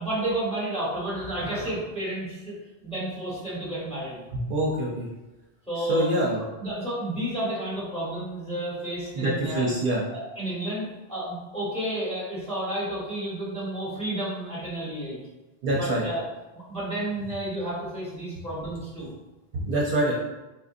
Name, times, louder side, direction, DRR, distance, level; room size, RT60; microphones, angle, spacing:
voice 1, 0.0-2.6 2.8-4.2 5.7-6.1 6.6-9.7 10.1-15.2 15.8-16.2 16.5-19.1, right 1 dB, 5° left, -8 dB, 1.2 m, -31 dB
voice 2, 4.3-5.1 5.8-6.4 9.1-10.0 15.6-16.0 19.5-20.1, right 1 dB, 65° right, -4 dB, 0.7 m, -25 dB
4.0 x 2.5 x 2.6 m, 1.1 s
omnidirectional pair, 1.0 m